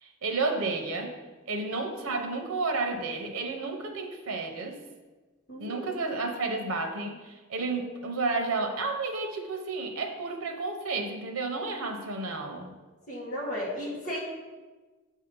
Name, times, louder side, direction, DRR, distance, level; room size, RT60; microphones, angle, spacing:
voice 1, 0.0-1.1 1.5-4.8 5.6-12.7, right 3 dB, 90° right, 4 dB, 0.8 m, -31 dB
voice 2, 5.5-5.8 13.1-14.2, equal, 40° left, -5 dB, 1.5 m, -34 dB
7.2 x 2.8 x 5.3 m, 1.3 s
head